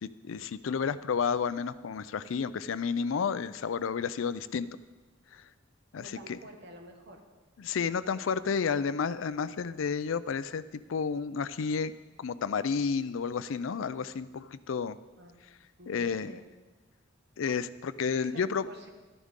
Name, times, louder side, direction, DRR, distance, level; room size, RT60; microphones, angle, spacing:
voice 1, 0.0-4.7 5.3-5.4 5.9-6.4 7.6-11.9 12.2-15.0 15.9-16.3 17.4-18.7, left 6 dB, 80° left, 15 dB, 0.4 m, -31 dB
voice 2, 6.0-7.2 15.2-15.4 15.8-16.4 18.2-18.9, right 1 dB, 60° right, 3 dB, 1.5 m, -49 dB
12.5 x 11.0 x 3.7 m, 1.2 s
head